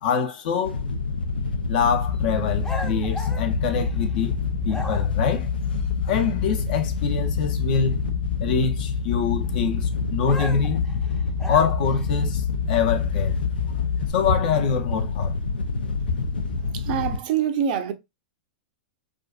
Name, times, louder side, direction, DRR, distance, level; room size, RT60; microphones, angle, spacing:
voice 1, 0.0-0.8 1.7-4.4 4.6-5.5 6.0-8.0 8.4-10.9 11.5-13.4 14.1-15.4, left 6 dB, 60° left, 0.7 m, -25 dB
Wind / Boat Water vehicle, 0.6-17.2, left 3 dB, 85° left, 0.4 m, -28 dB
sound 1, 2.0-14.1, left 8 dB, 35° left, 1.1 m, -30 dB
sound 2, 2.6-4.2 4.7-5.3 10.3-12.1, left 2 dB, 10° left, 0.5 m, -36 dB
voice 2, 16.6-17.9, right 9 dB, 55° right, 0.5 m, -25 dB
2.6 x 2.4 x 2.3 m
hypercardioid pair, 110°, 5 cm